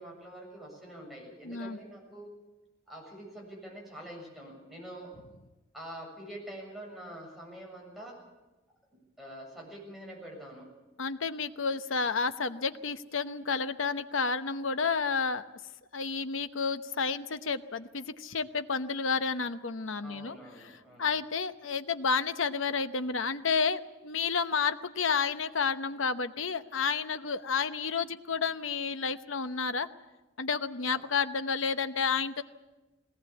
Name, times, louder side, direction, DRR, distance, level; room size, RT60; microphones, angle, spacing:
voice 1, 0.0-2.3 2.9-5.1 5.7-8.2 9.2-10.7 20.0-21.2 30.9-31.0, right 1 dB, ahead, -2 dB, 7.4 m, -45 dB
voice 2, 1.4-1.8 11.0-15.4 15.9-20.4 21.0-29.9 30.4-32.4, left 5 dB, 75° left, 10 dB, 1.0 m, -31 dB
20.5 x 18.5 x 8.5 m, 1.1 s
head